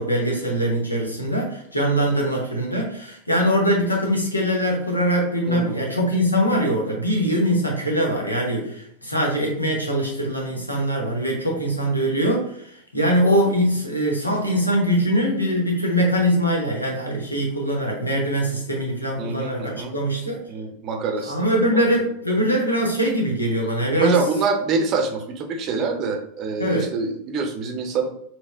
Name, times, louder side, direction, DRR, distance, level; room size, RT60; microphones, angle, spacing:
voice 1, 0.0-20.4 21.2-24.2 26.6-26.9, equal, 85° left, 0 dB, 1.0 m, -22 dB
voice 2, 5.5-5.9 19.2-19.9 20.5-21.5 24.0-28.1, right 4 dB, 35° right, 4 dB, 0.6 m, -25 dB
4.2 x 2.2 x 3.3 m, 0.71 s
figure-of-eight pair, 90°, 0 cm